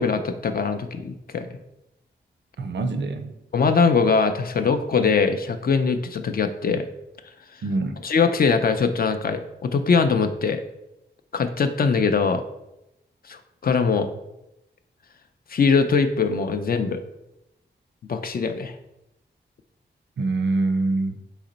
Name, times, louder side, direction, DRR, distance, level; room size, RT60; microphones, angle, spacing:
voice 1, 0.0-1.6 3.5-6.9 8.0-10.6 11.3-12.4 13.3-14.1 15.5-17.0 18.1-18.7, left 5 dB, 50° left, 8 dB, 0.4 m, -22 dB
voice 2, 2.6-3.3 7.6-8.0 20.2-21.2, right 3 dB, 75° right, 6 dB, 0.5 m, -25 dB
4.1 x 3.0 x 4.0 m, 0.89 s
wide cardioid pair, 70°, 19 cm